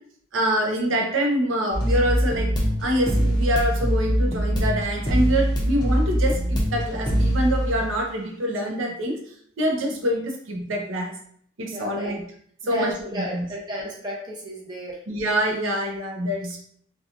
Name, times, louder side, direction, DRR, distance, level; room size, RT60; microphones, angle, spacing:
voice 1, 0.3-9.1 9.6-11.1 11.6-12.2 12.6-13.5 15.1-16.6, equal, 85° right, 1 dB, 0.7 m, -25 dB
sound 1, 1.7-8.0, equal, 20° left, 0.5 m, -23 dB
voice 2, 11.7-12.1 12.6-15.0, equal, 20° right, -3 dB, 0.6 m, -32 dB
2.8 x 2.3 x 2.4 m, 0.63 s
head